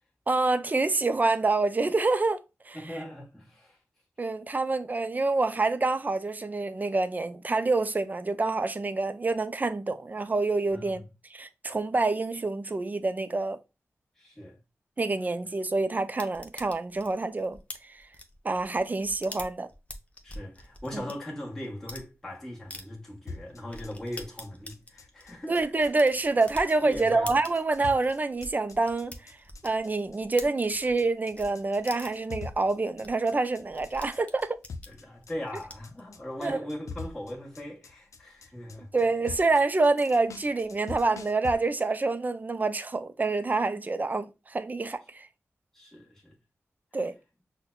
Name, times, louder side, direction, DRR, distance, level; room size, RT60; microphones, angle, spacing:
voice 1, 0.3-2.4 2.7-3.0 4.2-11.0 11.3-13.6 15.0-18.1 18.4-19.7 20.9-21.0 25.5-29.4 29.6-34.6 36.4-36.6 38.9-45.3 46.9-47.1, right 3 dB, 35° right, 0.4 m, -27 dB
voice 2, 2.7-3.8 10.7-11.0 14.2-14.6 20.2-25.6 26.8-27.4 27.8-27.9 34.9-39.1 45.7-46.4, left 1 dB, 10° left, 1.2 m, -39 dB
sound 1, 16.2-21.1 21.6-22.1 22.7-22.8 23.3-23.4 23.7-31.0 31.3-31.5 31.9-32.3 32.7-32.8 33.0-33.1 33.3-36.0, left 1 dB, 25° left, 0.6 m, -44 dB
sound 2, 23.3-41.5, left 4 dB, 85° left, 0.4 m, -44 dB
5.6 x 2.1 x 2.2 m
wide cardioid pair, 75°, 5 cm